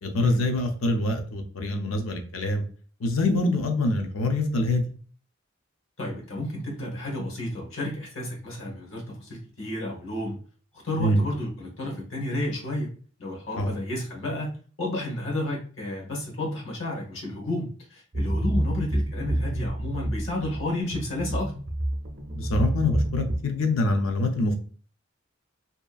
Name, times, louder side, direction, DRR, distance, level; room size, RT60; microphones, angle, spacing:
voice 1, 0.0-2.6 3.0-4.9 11.0-11.2 13.6-13.7 22.3-24.6, left 2 dB, 90° left, 4 dB, 0.5 m, -25 dB
voice 2, 6.0-10.4 10.8-12.9 13.2-21.5, left 1 dB, 70° left, -1 dB, 1.1 m, -31 dB
sound 1, 18.1-23.4, right 1 dB, 45° right, 0.5 m, -28 dB
2.8 x 2.3 x 2.3 m, 0.42 s
head